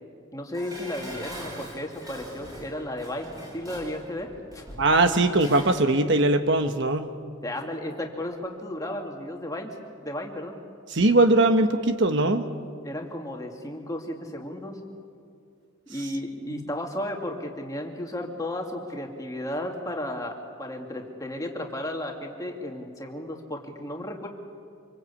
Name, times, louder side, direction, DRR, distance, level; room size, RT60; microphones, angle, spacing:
voice 1, 0.3-4.6 7.4-9.8 10.0-10.6 12.8-14.8 15.9-24.3, left 1 dB, 15° left, 1 dB, 2.4 m, -34 dB
Dishes pots and pans, 0.5-5.8 6.2-6.3, equal, 15° right, 7.5 m, -42 dB
voice 2, 4.8-7.1 10.9-12.4 16.6-16.7, right 2 dB, 55° right, 7 dB, 1.2 m, -20 dB
26.0 x 24.5 x 8.5 m, 2.3 s
head